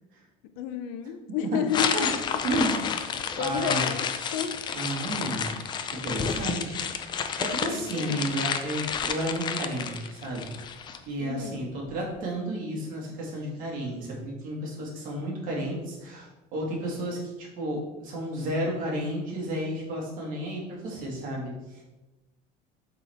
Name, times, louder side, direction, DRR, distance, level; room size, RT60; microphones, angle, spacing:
voice 1, 0.6-2.4 2.8-2.9 3.4-4.1 4.3-4.6 7.6-8.3 11.2-11.7, left 8 dB, 90° left, 8 dB, 0.7 m, -32 dB
sound 1, 1.7-11.0, left 7 dB, 25° left, 0.4 m, -30 dB
voice 2, 2.4-2.9 3.4-3.8 4.7-5.5 5.9-6.8 7.4-10.5 11.1-21.8, right 1 dB, 50° right, -2 dB, 2.0 m, -32 dB
8.3 x 3.9 x 3.5 m, 1.1 s
cardioid pair, 160°, 18 cm